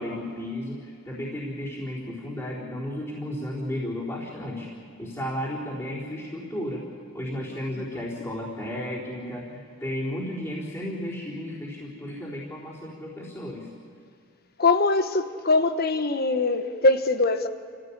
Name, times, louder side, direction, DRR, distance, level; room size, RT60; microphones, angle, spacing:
voice 1, 0.0-4.7 5.0-6.9 7.1-13.7, left 1 dB, 15° left, -7 dB, 4.0 m, -33 dB
voice 2, 14.6-17.5, left 3 dB, 45° left, 9 dB, 1.2 m, -22 dB
29.0 x 16.0 x 8.7 m, 2.3 s
head